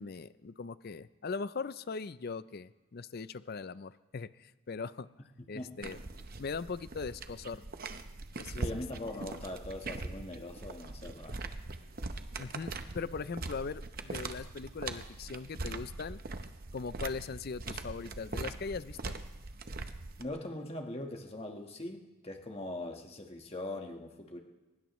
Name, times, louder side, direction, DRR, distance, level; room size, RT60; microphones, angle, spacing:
voice 1, 0.0-5.1 5.5-6.0 6.4-7.6 8.4-8.7 9.1-9.2 12.4-16.2 16.7-19.1, left 4 dB, 45° left, 15 dB, 0.4 m, -40 dB
sound 1, 5.8-20.2, right 3 dB, 40° right, 0.8 m, -42 dB
voice 2, 8.5-11.4 20.2-24.4, left 1 dB, 25° left, 3 dB, 1.4 m, -41 dB
23.0 x 19.5 x 3.1 m, 1.2 s
head